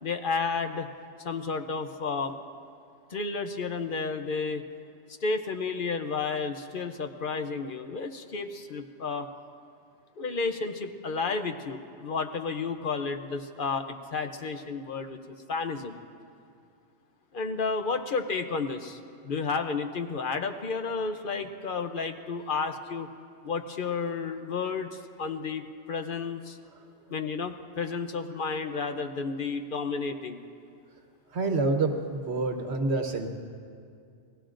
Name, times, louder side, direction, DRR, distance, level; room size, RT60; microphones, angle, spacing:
voice 1, 0.0-0.9 1.2-2.3 3.1-4.6 5.2-9.3 10.2-16.0 17.3-23.1 23.4-26.6 27.1-30.4, left 4 dB, 50° left, 7 dB, 0.8 m, -32 dB
voice 2, 31.3-33.3, right 3 dB, 65° right, 4 dB, 1.4 m, -27 dB
28.0 x 19.0 x 2.5 m, 2.4 s
omnidirectional pair, 1.2 m